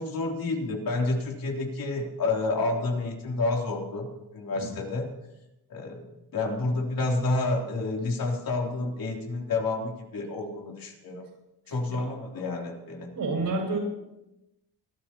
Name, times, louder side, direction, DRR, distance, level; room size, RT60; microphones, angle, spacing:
voice 1, 0.0-4.1 4.3-5.1 5.7-6.1 6.3-11.2 11.7-13.1, left 2 dB, 60° left, 0 dB, 3.5 m, -29 dB
voice 2, 13.1-13.8, right 3 dB, 60° right, 1 dB, 6.7 m, -30 dB
23.0 x 12.5 x 3.0 m, 0.91 s
cardioid pair, 105°, 39 cm